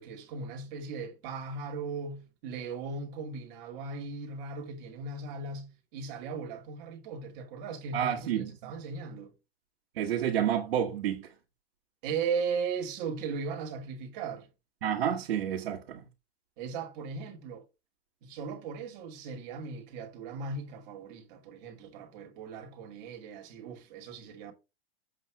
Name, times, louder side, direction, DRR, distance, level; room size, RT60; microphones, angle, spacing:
voice 1, 0.0-9.3 12.0-14.5 16.6-17.6 18.2-24.5, right 5 dB, 40° right, 2.4 m, -37 dB
voice 2, 7.9-8.5 10.0-11.3 14.8-16.0, right 9 dB, 80° right, 1.9 m, -29 dB
7.8 x 3.4 x 6.0 m
supercardioid pair, 160°, 31 cm